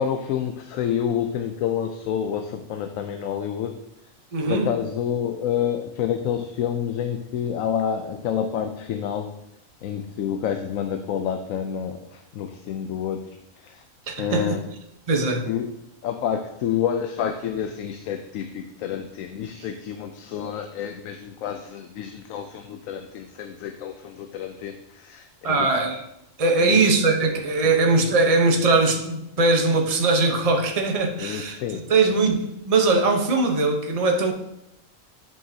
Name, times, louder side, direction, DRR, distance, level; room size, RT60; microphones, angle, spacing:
voice 1, 0.0-3.8 4.5-9.3 9.8-13.8 14.2-14.7 15.4-15.7 16.0-25.7 26.6-26.8 27.6-27.7 31.2-32.1, left 8 dB, 80° left, 1.0 m, -28 dB
voice 2, 4.3-4.7 14.1-14.6 15.1-15.5 25.4-26.0 26.4-34.3, right 3 dB, 30° right, 0.9 m, -21 dB
11.0 x 5.5 x 2.8 m
omnidirectional pair, 1.4 m